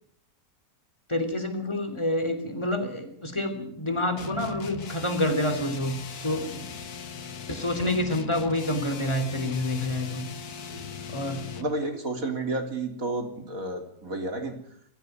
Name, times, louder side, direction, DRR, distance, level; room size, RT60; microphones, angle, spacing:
voice 1, 1.1-6.5 7.5-10.3 11.1-11.4, left 1 dB, 20° left, 7 dB, 3.3 m, -28 dB
sound 1, 4.2-11.8, left 6 dB, 90° left, 1.8 m, -39 dB
voice 2, 6.3-6.7 10.7-10.9 11.6-14.5, right 2 dB, 65° right, 4 dB, 3.9 m, -32 dB
22.0 x 15.0 x 9.4 m, 0.69 s
omnidirectional pair, 1.6 m